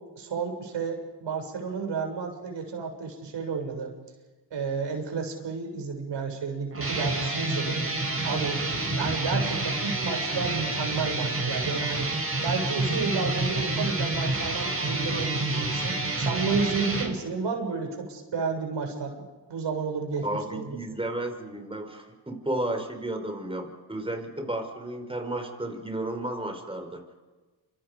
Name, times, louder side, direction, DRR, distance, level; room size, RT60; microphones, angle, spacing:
voice 1, 0.2-3.9 4.5-7.8 8.2-8.6 9.0-12.1 12.4-19.2 19.5-20.7, right 5 dB, 65° right, 4 dB, 7.0 m, -31 dB
sound 1, 6.7-17.1, right 2 dB, 30° right, 7.0 m, -28 dB
voice 2, 20.2-27.0, right 1 dB, 10° right, 5 dB, 5.1 m, -33 dB
28.5 x 26.5 x 5.3 m, 1.3 s
cardioid pair, 80°, 45 cm